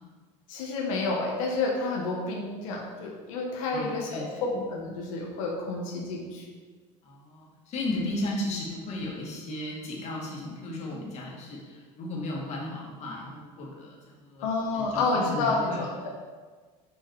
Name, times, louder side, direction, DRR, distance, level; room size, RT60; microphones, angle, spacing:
voice 1, 0.5-6.5 14.4-16.1, left 3 dB, 90° left, -2 dB, 1.2 m, -29 dB
voice 2, 3.7-4.4 7.0-14.5 14.7-15.9, left 1 dB, 45° left, -3 dB, 1.9 m, -35 dB
5.6 x 5.4 x 4.6 m, 1.4 s
supercardioid pair, 120°, 17 cm